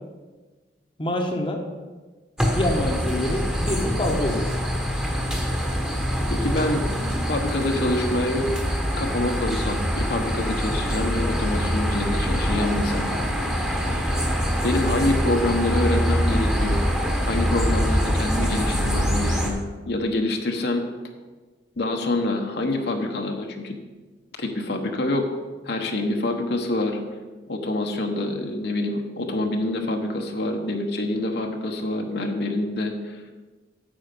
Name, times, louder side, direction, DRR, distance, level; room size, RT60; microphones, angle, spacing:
voice 1, 1.0-1.6 2.5-4.5, left 1 dB, 30° left, 2 dB, 1.0 m, -26 dB
sound 1, 2.4-19.5, equal, 5° right, 1.1 m, -24 dB
voice 2, 6.3-6.8 7.3-8.5 8.9-13.1 14.6-16.8 17.3-20.9 21.8-23.8 24.4-25.3 25.6-27.0 27.5-33.2, left 2 dB, 65° left, 3 dB, 1.1 m, -26 dB
9.1 x 7.9 x 5.3 m, 1.3 s
head